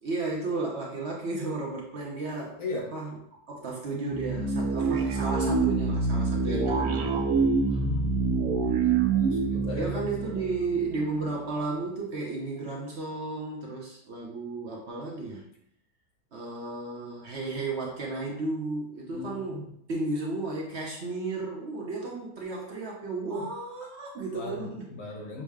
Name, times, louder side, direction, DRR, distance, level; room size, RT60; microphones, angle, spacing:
voice 1, 0.0-2.6 2.9-3.2 3.5-7.2 9.6-15.4 16.3-24.9, right 3 dB, 55° right, -2 dB, 0.9 m, -33 dB
voice 2, 2.6-2.9 7.7-10.1 19.1-19.7 23.3-23.5 24.3-25.4, left 2 dB, 75° left, -1 dB, 1.5 m, -38 dB
sound 1, 4.1-11.3, right 4 dB, 80° right, 1.1 m, -26 dB
6.2 x 2.1 x 3.5 m, 0.71 s
omnidirectional pair, 1.6 m